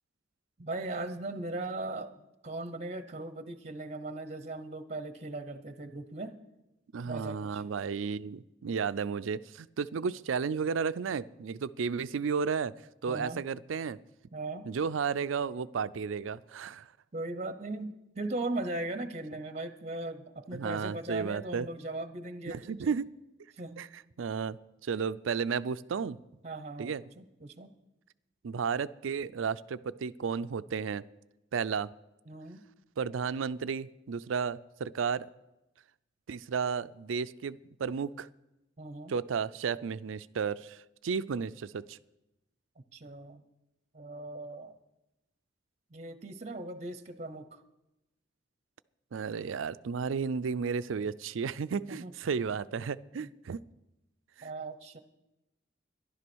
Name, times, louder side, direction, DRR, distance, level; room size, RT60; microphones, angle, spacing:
voice 1, 0.6-2.2 2.4-6.4 7.0-7.6 13.1-13.4 14.3-14.7 17.1-22.9 23.5-23.9 26.4-27.7 32.3-32.6 38.8-39.2 42.9-43.4 43.9-44.7 45.9-47.6 51.9-52.1 53.2-53.3 54.4-55.0, right 2 dB, 35° right, 11 dB, 0.8 m, -38 dB
voice 2, 6.9-12.7 13.0-14.0 14.6-16.9 20.5-21.7 22.5-23.1 23.8-26.2 26.8-27.0 28.4-31.0 31.5-31.9 33.0-35.3 36.3-38.3 39.1-42.0 49.1-53.6 54.4-54.5, right 6 dB, 90° right, 17 dB, 0.4 m, -33 dB
13.0 x 11.5 x 6.2 m, 0.94 s
head